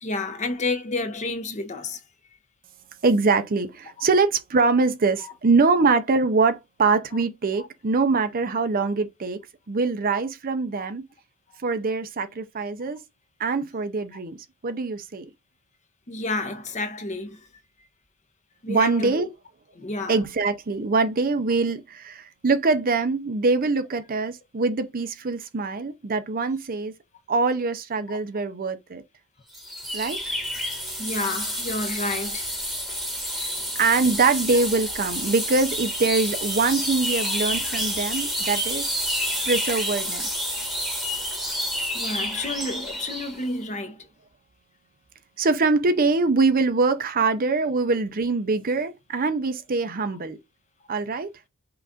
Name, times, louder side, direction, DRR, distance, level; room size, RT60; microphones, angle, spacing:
voice 1, 0.0-2.0 10.8-10.9 16.1-17.5 18.6-19.2 19.8-20.1 28.1-28.2 31.0-32.5 33.3-33.4 37.2-37.4 41.9-44.1, left 2 dB, 35° left, 0.8 m, -30 dB
voice 2, 3.0-9.4 9.7-11.1 11.6-13.0 13.4-14.4 14.6-15.3 18.7-19.3 20.1-26.9 27.3-29.0 29.9-30.3 33.4-33.5 33.8-38.8 39.5-40.3 45.4-50.4 50.9-51.3, right 3 dB, 40° right, 0.6 m, -23 dB
sound 1, 29.5-43.4, equal, ahead, 1.3 m, -29 dB
5.8 x 2.5 x 3.6 m
head